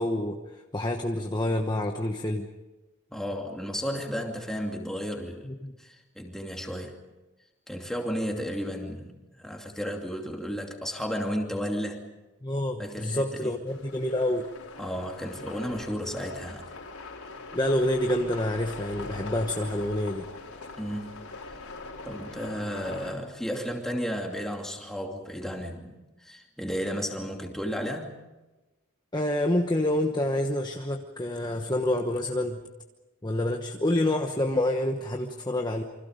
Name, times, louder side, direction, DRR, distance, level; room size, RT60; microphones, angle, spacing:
voice 1, 0.0-2.5 5.4-5.7 12.4-14.5 17.5-20.3 29.1-32.6 33.2-35.8, left 1 dB, 20° left, 3 dB, 1.1 m, -27 dB
voice 2, 3.1-5.5 5.8-7.0 7.7-12.0 12.8-13.6 14.8-16.7 20.8-21.1 22.0-28.1, equal, ahead, 1 dB, 2.6 m, -33 dB
sound 1, 13.6-23.1, left 3 dB, 80° left, 4.6 m, -42 dB
28.5 x 25.5 x 5.2 m, 1.1 s
head